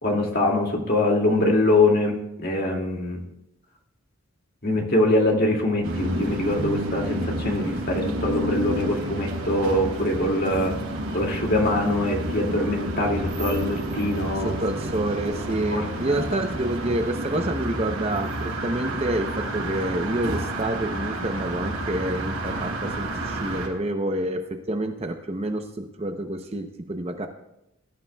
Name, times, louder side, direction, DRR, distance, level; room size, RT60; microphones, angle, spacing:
voice 1, 0.0-3.2 4.6-10.7 11.1-14.6 15.7-16.2, left 1 dB, 45° left, 1 dB, 2.2 m, -23 dB
sound 1, 5.8-23.7, right 1 dB, 80° right, 4.0 m, -30 dB
voice 2, 14.4-27.3, right 1 dB, 25° right, 6 dB, 0.7 m, -28 dB
20.5 x 11.5 x 2.3 m, 0.85 s
head